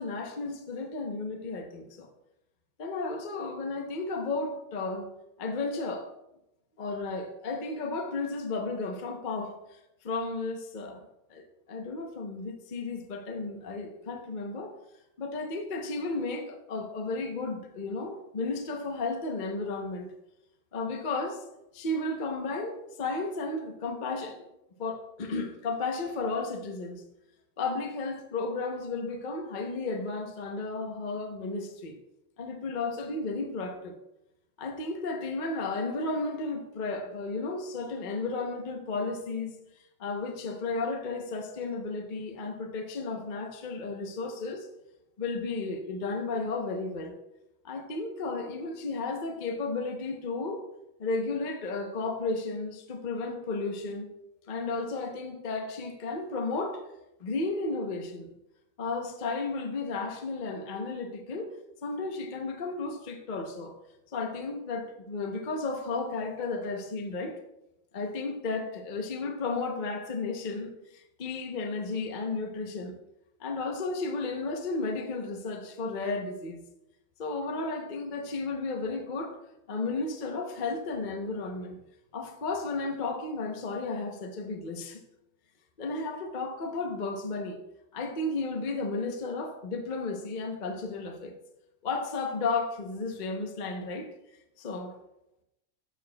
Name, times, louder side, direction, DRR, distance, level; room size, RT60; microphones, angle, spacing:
voice 1, 0.0-2.1 2.8-5.1 5.4-6.1 6.8-14.7 15.2-20.1 20.7-21.4 21.7-24.5 24.8-27.0 27.6-32.0 32.4-34.0 34.6-39.6 40.0-44.7 45.2-47.2 47.6-50.6 51.0-54.1 54.5-56.8 57.2-58.3 58.8-61.6 61.8-63.8 64.1-67.4 67.9-73.0 73.4-76.6 77.2-79.4 79.7-81.8 82.1-85.0 85.8-87.6 87.9-91.3 91.8-94.1 94.6-95.0, left 3 dB, 55° left, 0.5 m, -33 dB
12.0 x 7.5 x 2.3 m
omnidirectional pair, 2.3 m